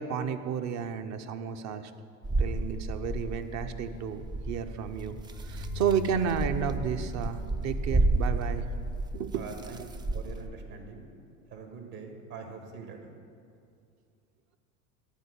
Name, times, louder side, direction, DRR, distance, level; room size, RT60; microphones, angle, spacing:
voice 1, 0.0-1.9 2.4-5.2 5.5-8.6 9.1-9.4, right 7 dB, 40° right, 9 dB, 0.7 m, -32 dB
sound 1, 2.2-10.5, right 2 dB, 10° right, 0.3 m, -32 dB
sound 2, 5.3-8.5, left 6 dB, 45° left, 0.6 m, -42 dB
voice 2, 9.3-9.8 10.1-11.1 11.5-13.0, right 5 dB, 60° right, 3 dB, 1.8 m, -43 dB
11.5 x 4.5 x 8.1 m, 2.4 s
hypercardioid pair, 85°, 42 cm